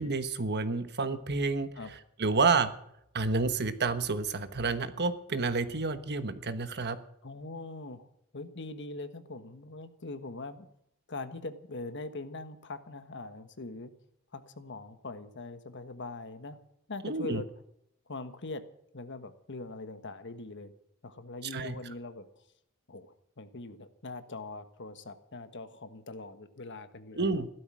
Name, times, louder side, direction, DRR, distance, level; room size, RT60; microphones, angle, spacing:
voice 1, 0.0-1.7 2.2-2.7 3.1-7.0 17.0-17.4 21.5-21.7 27.2-27.5, right 4 dB, 50° right, 11 dB, 1.2 m, -29 dB
voice 2, 7.2-8.1 8.3-10.7 11.1-13.9 14.3-16.6 16.9-17.5 18.1-18.7 18.9-20.7 21.0-22.4 22.9-27.5, left 2 dB, 55° left, 10 dB, 1.4 m, -42 dB
15.5 x 13.0 x 6.3 m, 0.74 s
head